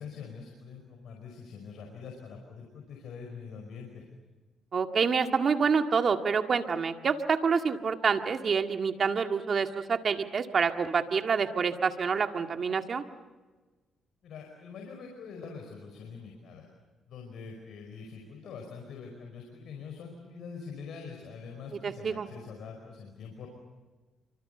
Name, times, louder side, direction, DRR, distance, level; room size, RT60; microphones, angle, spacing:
voice 1, 0.0-4.0 14.2-16.7 17.1-23.5, left 5 dB, 70° left, 2 dB, 5.1 m, -44 dB
voice 2, 4.7-13.0 21.8-22.3, right 5 dB, 45° right, 6 dB, 1.9 m, -27 dB
28.0 x 25.0 x 6.8 m, 1.3 s
cardioid pair, 90°, 0 cm